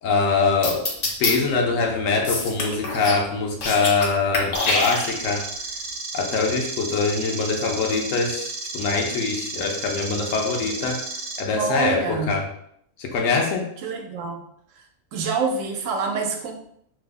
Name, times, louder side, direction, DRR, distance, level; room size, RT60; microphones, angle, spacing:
voice 1, 0.0-0.9 1.2-5.4 6.1-11.0 11.4-12.4 13.0-13.7, left 4 dB, 75° left, 1 dB, 1.0 m, -23 dB
sound 1, 0.6-1.3 2.2-3.2 3.5-4.1 4.3-5.4, left 2 dB, 50° left, 0.5 m, -25 dB
sound 2, 4.5-11.4, right 3 dB, 60° right, 0.6 m, -33 dB
voice 2, 11.6-12.3 13.8-14.4 15.1-16.5, right 4 dB, 80° right, 3 dB, 1.0 m, -26 dB
3.1 x 2.0 x 3.4 m, 0.71 s
omnidirectional pair, 1.4 m